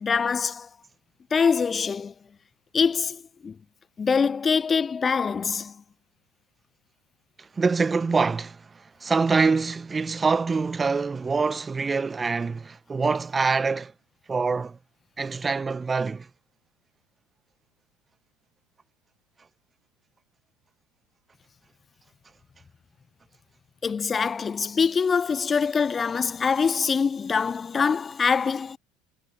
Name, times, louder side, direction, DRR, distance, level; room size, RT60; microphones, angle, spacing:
voice 1, 0.0-0.7 1.3-2.1 2.7-3.5 4.0-5.7 23.8-28.8, left 5 dB, 25° left, 0.4 m, -24 dB
voice 2, 7.6-8.6 9.0-13.9 14.3-14.8 15.2-16.3, right 4 dB, 20° right, 1.3 m, -25 dB
hypercardioid pair, 75°, 0 cm